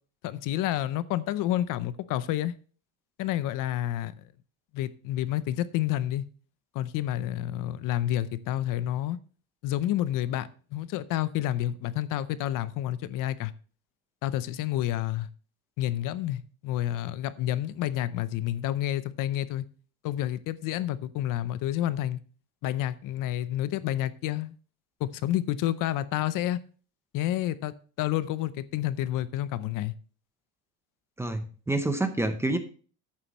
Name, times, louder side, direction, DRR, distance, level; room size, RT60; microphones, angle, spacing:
voice 1, 0.2-2.5 3.2-4.2 4.7-6.2 6.7-9.2 9.6-13.5 14.2-15.3 15.8-19.6 20.0-22.2 22.6-24.5 25.0-26.6 27.1-29.9, left 13 dB, 50° left, 15 dB, 0.6 m, -29 dB
voice 2, 31.2-32.6, right 2 dB, 5° right, 8 dB, 0.7 m, -28 dB
11.0 x 8.7 x 3.0 m, 0.40 s
cardioid pair, 160°, 43 cm